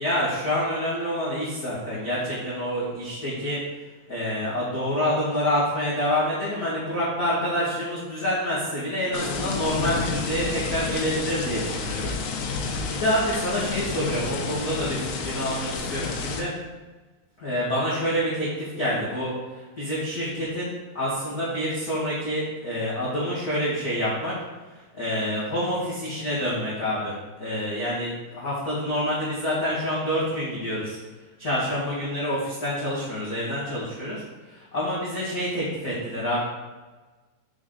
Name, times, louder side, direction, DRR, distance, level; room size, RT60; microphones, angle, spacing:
voice 1, 0.0-3.6 4.1-12.1 12.9-16.5 17.4-24.3 24.9-31.0 31.4-36.4, equal, 65° left, -9 dB, 0.9 m, -27 dB
sound 1, 9.1-16.4, left 4 dB, 85° left, 2.9 m, -30 dB
7.3 x 6.2 x 3.8 m, 1.2 s
omnidirectional pair, 4.8 m